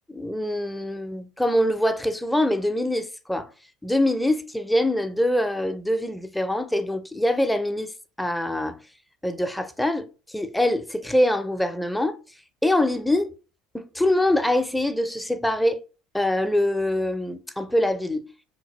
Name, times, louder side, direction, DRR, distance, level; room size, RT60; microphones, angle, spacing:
voice 1, 0.1-3.5 3.8-7.9 8.2-8.8 9.2-12.2 12.6-13.3 13.7-15.8 16.1-18.3, left 1 dB, 5° left, 0.4 m, -24 dB
3.2 x 2.5 x 2.9 m
hypercardioid pair, 75°, 0 cm